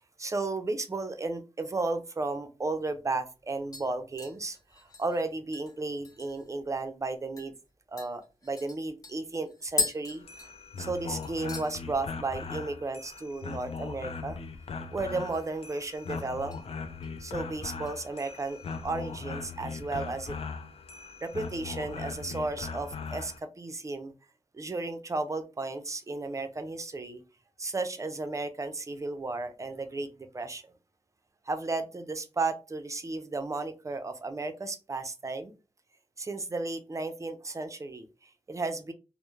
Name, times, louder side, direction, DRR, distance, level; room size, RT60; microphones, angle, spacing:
voice 1, 0.2-7.5 7.9-10.2 10.8-14.4 14.9-16.5 17.2-20.4 21.2-24.1 24.5-27.2 27.6-30.6 31.5-35.5 36.2-38.9, right 3 dB, 25° right, 8 dB, 0.4 m, -34 dB
sound 1, 2.6-2.7 3.1-3.4 3.7-6.6 6.9-7.0 7.4-7.5 8.0-11.0 11.2-11.7 12.1-12.5 12.7-12.8 14.9-15.6 15.9-16.6 17.0-17.3 17.9-18.8 19.1-19.2, left 3 dB, 35° left, 0.8 m, -38 dB
sound 2, 10.1-23.4, left 4 dB, 60° left, 0.4 m, -39 dB
2.2 x 2.0 x 3.1 m, 0.31 s
wide cardioid pair, 70°, 12 cm